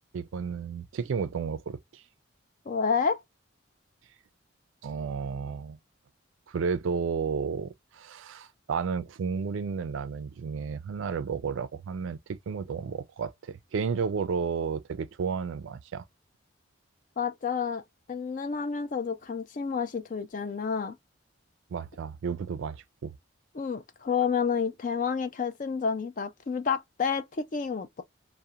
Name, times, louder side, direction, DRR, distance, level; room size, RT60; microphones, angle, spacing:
voice 1, 0.1-2.0 4.8-5.8 6.5-16.0 21.7-23.1, right 6 dB, 70° right, 0.4 m, -32 dB
voice 2, 2.7-3.2 17.2-17.8 18.1-20.9 23.5-28.0, left 6 dB, 40° left, 0.3 m, -29 dB
2.4 x 2.1 x 2.7 m
head